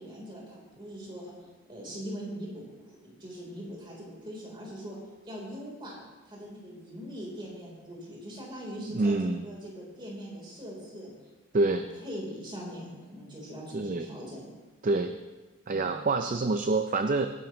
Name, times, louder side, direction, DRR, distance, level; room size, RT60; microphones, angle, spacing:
voice 1, 0.0-1.3 1.7-5.0 5.2-11.1 11.6-14.4 15.7-15.9, equal, 20° right, -3 dB, 3.8 m, -42 dB
voice 2, 8.9-9.5 11.5-11.8 13.7-14.1 14.8-15.1 15.7-17.3, right 3 dB, 40° right, 8 dB, 0.5 m, -26 dB
21.5 x 11.0 x 3.1 m, 1.2 s
head